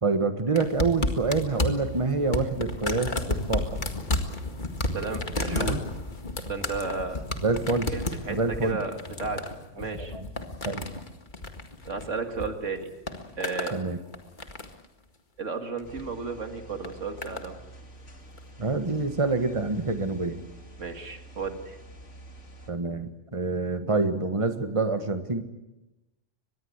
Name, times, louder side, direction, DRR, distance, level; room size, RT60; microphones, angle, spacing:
voice 1, 0.0-3.8 5.5-5.8 7.4-7.9 8.3-8.8 9.8-10.3 10.6-10.9 13.7-14.0 18.6-20.4 22.7-25.4, right 3 dB, 25° right, 8 dB, 1.6 m, -27 dB
sound 1, 0.5-12.5 12.8-13.8 14.1-14.8 15.8-16.1 16.8-17.5 18.4-18.5, left 2 dB, 40° left, 2.1 m, -32 dB
voice 2, 4.9-5.8 6.5-7.2 7.9-9.5 9.8-10.1 11.8-12.9 13.4-13.8 15.4-17.6 20.8-21.8, right 4 dB, 80° right, 6 dB, 2.5 m, -33 dB
sound 2, 15.8-22.7, right 1 dB, 75° left, 3.2 m, -48 dB
24.0 x 20.5 x 8.2 m, 0.97 s
omnidirectional pair, 1.3 m